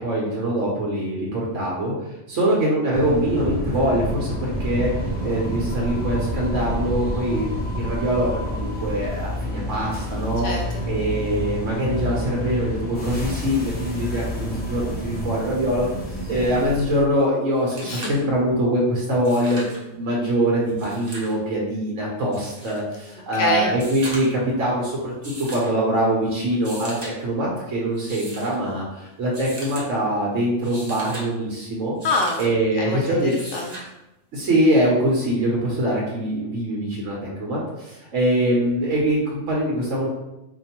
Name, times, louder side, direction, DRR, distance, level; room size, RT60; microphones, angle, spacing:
voice 1, 0.0-1.9 2.3-4.9 5.2-10.5 10.9-15.9 16.3-32.0 32.4-33.3 34.3-40.1, right 1 dB, 85° right, -4 dB, 1.2 m, -23 dB
sound 1, 2.9-17.0, equal, 10° left, 0.6 m, -29 dB
voice 2, 10.4-10.8 17.8-18.0 23.4-23.7 32.0-32.4 32.7-33.7, left 3 dB, 75° left, -1 dB, 0.9 m, -25 dB
sound 2, 17.2-17.3 17.5-18.2 19.1-19.8 20.7-21.4 22.3-22.8 23.7-24.4 25.2-25.7 26.5-27.1 27.9-28.5 29.3-29.9 30.5-31.3 32.0-32.5 33.3-33.9 35.3-35.4, right 1 dB, 35° right, 0.9 m, -38 dB
4.4 x 2.6 x 2.9 m, 0.94 s
omnidirectional pair, 1.3 m